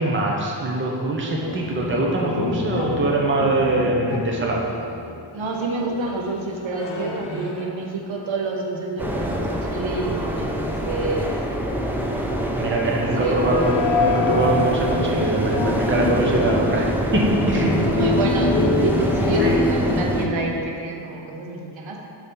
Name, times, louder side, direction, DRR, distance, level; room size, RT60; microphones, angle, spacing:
voice 1, 0.0-4.7 12.6-18.1 19.4-19.6, right 2 dB, 25° right, -2 dB, 0.8 m, -23 dB
sound 1, 1.4-8.2 8.5-8.6 13.2-20.6, left 2 dB, 65° left, 0.8 m, -27 dB
voice 2, 5.3-11.4 13.0-13.4 17.8-22.0, right 3 dB, 85° right, 0 dB, 0.9 m, -28 dB
sound 2, 9.0-20.3, equal, 5° right, 0.4 m, -25 dB
6.2 x 4.2 x 5.3 m, 2.5 s
wide cardioid pair, 180°, 45 cm